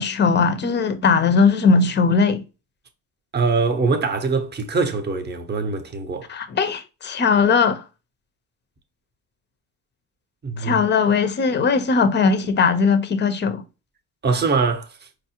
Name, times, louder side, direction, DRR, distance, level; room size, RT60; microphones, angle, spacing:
voice 1, 0.0-2.4 6.3-7.8 10.6-13.6, left 5 dB, 25° left, 0.5 m, -19 dB
voice 2, 3.3-6.3 10.4-10.8 14.2-14.9, right 4 dB, 25° right, 0.7 m, -23 dB
4.6 x 2.0 x 2.8 m
supercardioid pair, 75°, 44 cm